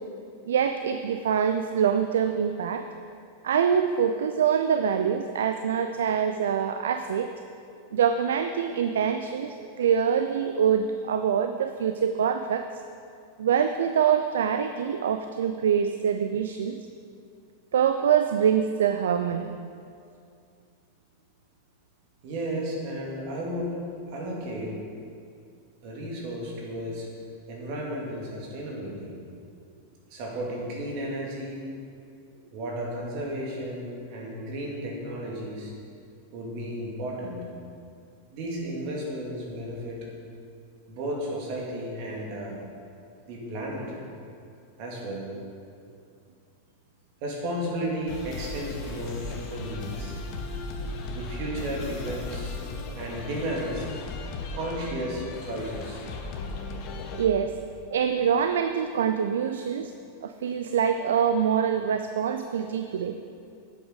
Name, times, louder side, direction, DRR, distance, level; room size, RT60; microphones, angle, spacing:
voice 1, 0.4-2.9 3.4-7.3 7.9-12.7 13.4-16.8 17.7-19.5 57.1-57.5 57.9-59.9 60.2-63.2, right 8 dB, 60° right, 8 dB, 0.4 m, -25 dB
voice 2, 22.2-23.8 24.1-24.8 25.8-27.1 27.5-29.1 30.1-31.6 32.5-35.7 36.3-37.5 38.3-40.0 40.9-42.6 43.3-43.9 44.8-45.3 47.2-50.2 51.1-52.6 52.9-53.9 54.5-56.0, right 1 dB, 45° right, -2 dB, 2.6 m, -33 dB
sound 1, 48.1-57.3, left 3 dB, 40° left, 1.1 m, -36 dB
10.5 x 7.9 x 4.9 m, 2.4 s
figure-of-eight pair, 90°, 0 cm